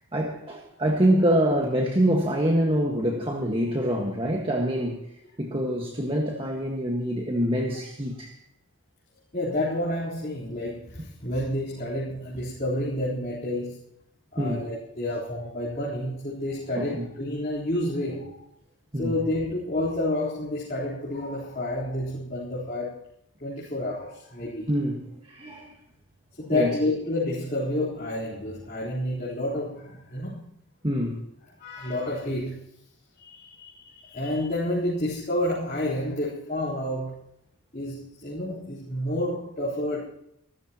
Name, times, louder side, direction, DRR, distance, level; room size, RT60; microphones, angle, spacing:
voice 1, 0.1-5.0 5.4-8.3 11.0-11.1 14.4-14.7 16.7-17.1 18.9-19.1 24.7-25.7 26.5-26.8 30.8-31.2, equal, 25° right, 0 dB, 1.6 m, -25 dB
voice 2, 9.3-13.8 14.3-18.5 19.0-23.1 23.4-24.7 26.4-30.4 31.6-32.6 33.2-37.2 37.7-40.1, left 1 dB, 35° left, -8 dB, 4.0 m, -29 dB
25.0 x 13.5 x 3.0 m, 0.75 s
head